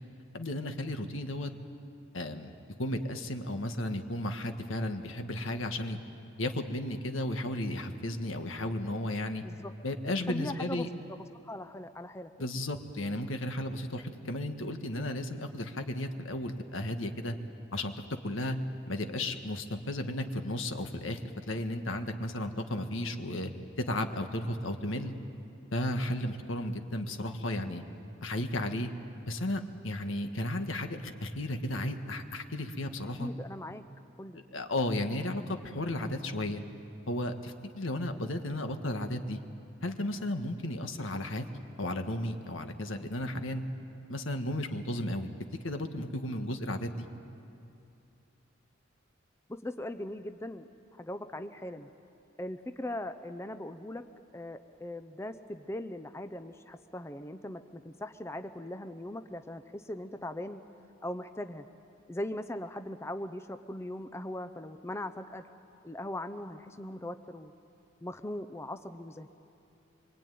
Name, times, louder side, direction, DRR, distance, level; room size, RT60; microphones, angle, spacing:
voice 1, 0.3-1.5 2.1-2.5 2.8-6.0 6.4-9.4 9.8-10.9 12.4-17.3 17.7-17.9 18.2-18.6 18.9-23.5 23.9-25.1 25.7-27.8 28.2-28.9 29.3-33.3 34.5-36.6 37.1-39.4 39.8-41.4 41.8-43.6 44.1-45.3 45.6-47.1, left 1 dB, 75° left, 6 dB, 1.7 m, -34 dB
voice 2, 10.3-12.3 33.2-33.8 34.2-34.4 49.5-50.7 51.0-51.9 52.4-54.0 54.3-60.6 61.0-61.6 62.1-65.5 65.8-67.5 68.0-69.3, left 1 dB, 15° left, 9 dB, 0.6 m, -40 dB
25.0 x 24.0 x 9.4 m, 2.7 s
head